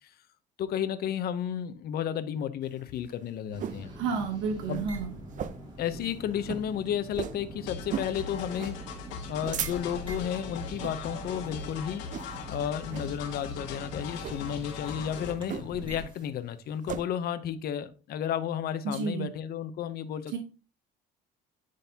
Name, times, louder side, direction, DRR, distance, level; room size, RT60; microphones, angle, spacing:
voice 1, 0.6-3.9 4.7-4.8 5.8-8.8 9.3-12.0 12.5-20.4, left 9 dB, 55° left, 0.7 m, -32 dB
sound 1, 2.7-3.9 4.3-4.4 4.6-4.9 5.3-5.8 6.1-6.2 6.4-6.7 7.1-7.4 7.9-8.2 8.6-8.8 9.2-10.1 10.7-11.0 11.4-11.7 12.1-12.5 12.9-13.1 14.1-14.4 15.5-15.9 16.2-17.0, right 8 dB, 40° right, 0.6 m, -36 dB
sound 2, 3.5-16.3, right 1 dB, 25° right, 2.3 m, -44 dB
voice 2, 3.9-5.1 18.8-19.3 20.3-20.4, right 5 dB, 75° right, 1.0 m, -31 dB
sound 3, 7.7-15.4, left 5 dB, 80° left, 1.4 m, -40 dB
10.5 x 3.9 x 2.8 m
cardioid pair, 120°, 19 cm